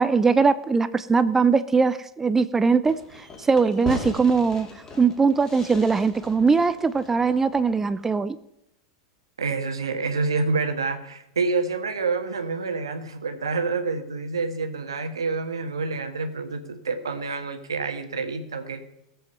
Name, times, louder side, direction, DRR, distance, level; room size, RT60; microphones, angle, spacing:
voice 1, 0.0-4.7 5.0-8.4, right 4 dB, 15° right, 14 dB, 0.5 m, -21 dB
Fireworks, 2.9-8.1, left 2 dB, 25° left, 2.7 m, -39 dB
voice 2, 9.4-19.0, right 4 dB, 80° right, 7 dB, 1.4 m, -28 dB
17.0 x 7.7 x 5.4 m, 0.82 s
hypercardioid pair, 90°, 2 cm